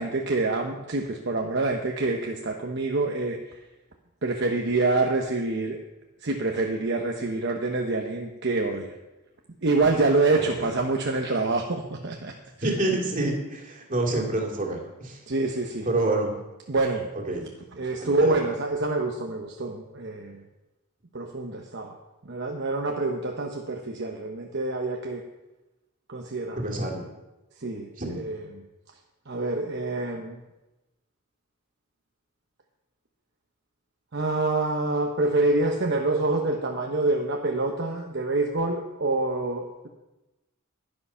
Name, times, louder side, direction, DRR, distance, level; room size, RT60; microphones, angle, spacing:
voice 1, 0.0-3.6 4.2-5.8 6.2-9.0 9.6-12.3 12.6-12.7 15.3-15.9 16.7-17.1 17.7-20.4 21.1-22.0 22.2-25.2 26.1-26.8 27.5-28.6 29.3-30.4 34.1-39.9, right 2 dB, 55° right, 2 dB, 1.0 m, -26 dB
voice 2, 12.6-15.2 15.8-16.3 17.3-17.4 18.0-18.3 26.6-27.0 28.0-28.3, right 2 dB, 40° right, -1 dB, 2.4 m, -27 dB
11.0 x 9.9 x 5.7 m, 1.0 s
head